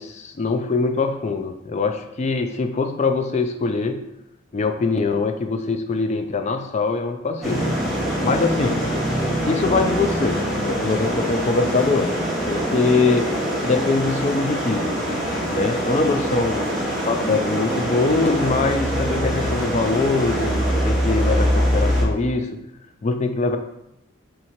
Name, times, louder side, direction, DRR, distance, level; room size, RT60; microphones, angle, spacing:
voice 1, 0.0-4.0 4.5-7.7 8.2-8.8 9.5-12.2 12.5-13.4 13.6-15.0 15.5-16.7 17.1-22.6 23.0-23.6, left 3 dB, 35° left, 6 dB, 0.3 m, -23 dB
sound 1, 7.4-22.0, equal, ahead, 1.0 m, -23 dB
3.7 x 3.0 x 4.2 m, 0.83 s
head